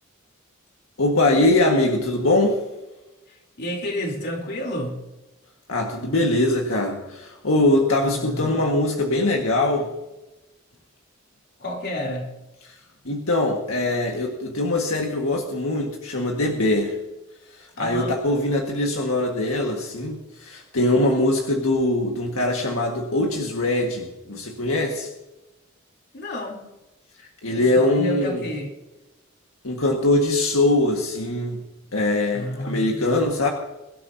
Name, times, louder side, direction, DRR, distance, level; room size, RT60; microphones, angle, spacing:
voice 1, 1.0-2.6 5.7-9.9 13.0-17.0 17.8-25.1 27.4-28.4 29.6-31.6 31.9-33.5, left 2 dB, 80° left, 1 dB, 1.7 m, -22 dB
voice 2, 3.3-5.0 8.0-8.6 11.6-12.3 17.8-18.2 24.3-24.4 26.1-26.6 27.5-28.8 32.3-33.0, equal, 55° left, 1 dB, 3.4 m, -30 dB
23.0 x 12.5 x 2.8 m, 1.0 s
head